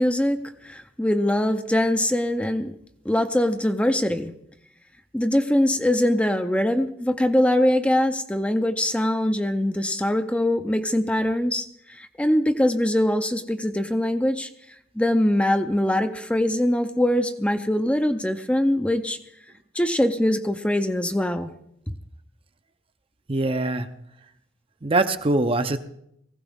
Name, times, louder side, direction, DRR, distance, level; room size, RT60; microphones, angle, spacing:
voice 1, 0.0-2.7 3.0-4.3 5.1-14.5 15.0-19.2 19.7-21.5 21.9-22.0, left 1 dB, 5° left, 8 dB, 0.6 m, -22 dB
voice 2, 23.3-23.9 24.8-25.8, right 2 dB, 30° right, 9 dB, 0.7 m, -22 dB
19.5 x 15.5 x 3.6 m, 0.74 s
head